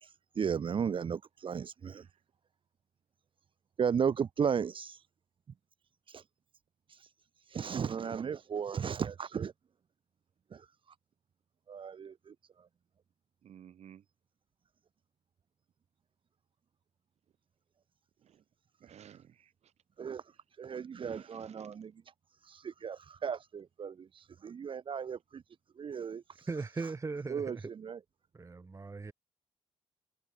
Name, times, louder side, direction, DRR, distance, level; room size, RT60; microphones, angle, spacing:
voice 1, 0.0-2.1 3.8-5.0 6.1-6.2 6.9-7.1 7.5-9.5 10.5-10.7 11.7-12.3 20.0-20.2 20.6-21.9 22.4-25.4 25.8-26.5 27.3-28.0, right 7 dB, 50° right, 1.0 m, -35 dB
voice 2, 13.4-14.0 18.2-18.4 18.8-19.5 21.0-21.7, right 9 dB, 75° right, 5.8 m, -55 dB
voice 3, 26.5-27.7 28.3-29.1, right 4 dB, 25° right, 1.4 m, -39 dB
cardioid pair, 100°, 11 cm